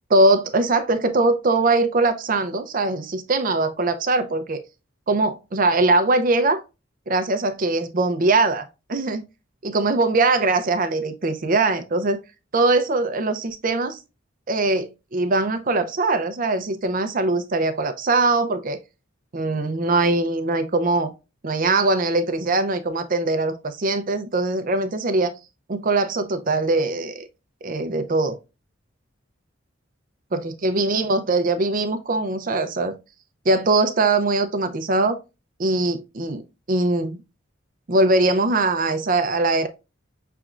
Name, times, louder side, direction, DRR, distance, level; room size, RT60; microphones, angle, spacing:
voice 1, 0.1-4.6 5.1-6.6 7.1-9.2 9.6-12.2 12.5-14.0 14.5-18.8 19.3-21.1 21.4-25.3 25.7-27.3 27.6-28.4 30.3-32.9 33.5-35.2 35.6-36.4 36.7-37.2 37.9-39.7, right 2 dB, 45° right, 0.6 m, -21 dB
5.9 x 3.4 x 2.4 m
head